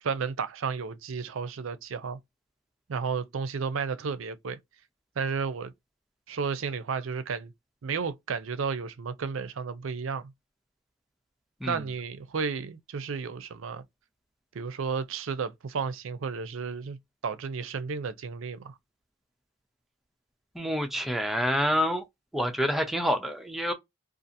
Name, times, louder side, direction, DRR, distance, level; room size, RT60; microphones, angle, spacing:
voice 1, 0.0-2.2 2.9-4.6 5.2-5.7 6.3-7.5 7.8-10.3 11.7-13.8 14.5-17.0 17.2-18.7, right 5 dB, 80° right, 0.5 m, -32 dB
voice 2, 20.5-22.0 22.3-23.7, equal, ahead, 0.5 m, -27 dB
2.7 x 2.4 x 2.5 m
head